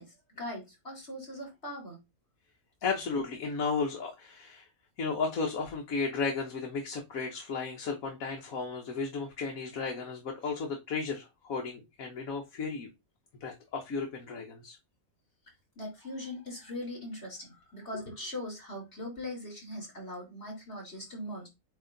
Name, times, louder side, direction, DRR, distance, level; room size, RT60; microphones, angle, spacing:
voice 1, 0.0-2.0 15.8-21.5, left 1 dB, 45° left, -1 dB, 4.1 m, -40 dB
voice 2, 2.8-4.7 5.0-12.9 13.4-14.8, left 4 dB, 70° left, 2 dB, 1.7 m, -34 dB
8.6 x 2.9 x 3.9 m, 0.22 s
omnidirectional pair, 1.5 m